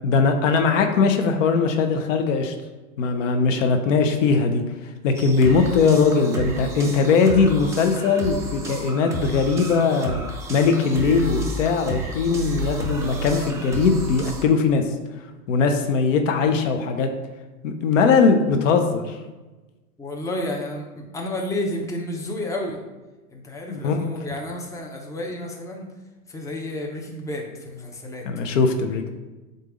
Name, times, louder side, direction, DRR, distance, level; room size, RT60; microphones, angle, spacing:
voice 1, 0.0-2.5 3.0-10.2 10.5-14.8 15.5-17.1 17.6-19.2 23.7-24.1 28.3-29.1, left 5 dB, 60° left, 5 dB, 0.9 m, -20 dB
sound 1, 5.1-14.4, right 2 dB, 10° right, 0.3 m, -31 dB
voice 2, 20.0-22.8 23.3-25.9 26.3-28.3, left 1 dB, 5° left, 0 dB, 0.9 m, -31 dB
7.7 x 2.7 x 5.1 m, 1.2 s
hypercardioid pair, 100°, 44 cm